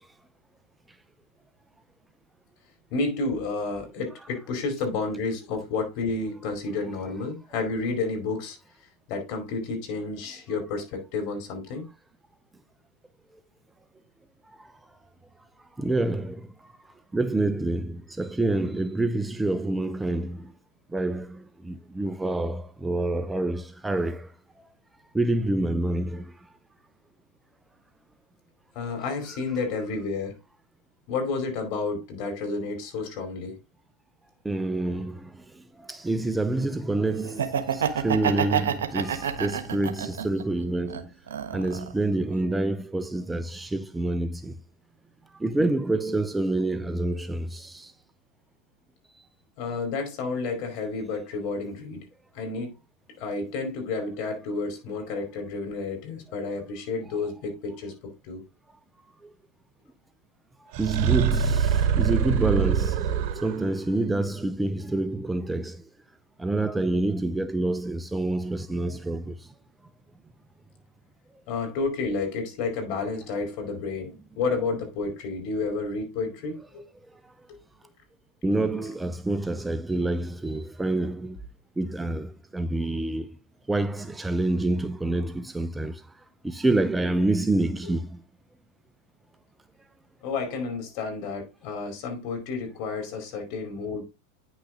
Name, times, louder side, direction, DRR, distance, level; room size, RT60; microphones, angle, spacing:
voice 1, 2.9-8.6 9.1-11.9 28.7-30.4 31.1-33.6 49.6-52.1 52.3-52.7 53.2-58.4 71.5-76.8 87.8-87.9 90.2-94.0, left 3 dB, 55° left, 4.7 m, -31 dB
voice 2, 15.8-16.5 17.1-20.5 20.9-24.3 25.1-26.3 34.4-41.1 41.5-44.6 45.3-47.9 59.2-59.3 60.8-65.8 66.4-69.5 78.4-81.4 81.8-83.4 83.7-86.0 86.4-88.2, right 2 dB, 10° right, 0.7 m, -27 dB
Laughter, 37.3-40.4 40.9-42.0, right 8 dB, 80° right, 1.3 m, -27 dB
sound 1, 60.7-63.8, right 8 dB, 55° right, 1.2 m, -24 dB
9.7 x 6.3 x 3.8 m
hypercardioid pair, 100°, 0 cm